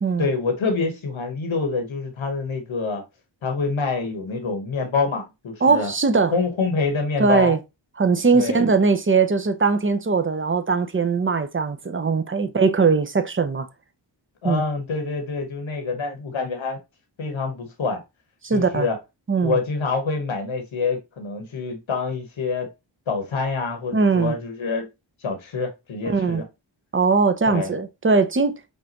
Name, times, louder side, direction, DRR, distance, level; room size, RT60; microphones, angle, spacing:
voice 1, 0.2-3.0 3.4-5.9 6.3-7.5 8.3-8.6 14.4-16.8 17.2-18.0 18.5-19.0 19.4-22.7 23.1-24.9 25.2-26.4 27.5-27.7, left 4 dB, 90° left, 1.2 m, -26 dB
voice 2, 5.6-6.3 7.2-7.6 8.0-13.7 14.4-14.6 18.4-18.9 19.3-19.6 23.9-24.4 26.0-26.4 26.9-28.6, right 4 dB, 25° right, 0.6 m, -20 dB
5.4 x 2.6 x 2.9 m
wide cardioid pair, 75°, 46 cm